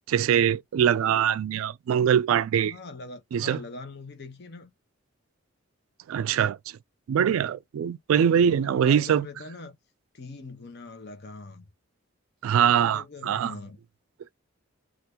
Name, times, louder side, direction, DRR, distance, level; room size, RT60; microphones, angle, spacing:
voice 1, 0.1-2.7 3.3-3.6 6.1-6.6 7.1-9.3 12.4-13.5, right 8 dB, 85° right, 0.3 m, -23 dB
voice 2, 2.5-4.7 8.2-9.8 10.1-11.7 12.6-13.8, left 3 dB, 55° left, 0.8 m, -42 dB
2.8 x 2.5 x 3.4 m
head